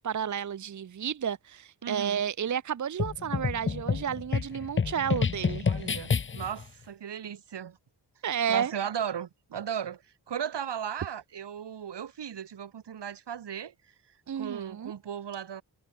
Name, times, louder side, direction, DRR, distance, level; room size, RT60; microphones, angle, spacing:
voice 1, 0.0-5.7 8.2-8.7 14.3-14.9, right 8 dB, 45° right, 0.8 m, -31 dB
voice 2, 1.8-2.2 5.7-7.8 8.5-10.0 10.3-13.7 14.3-15.6, right 8 dB, 85° right, 4.1 m, -36 dB
sound 1, 3.0-6.6, left 6 dB, 30° left, 0.7 m, -29 dB
wide cardioid pair, 110°, 40 cm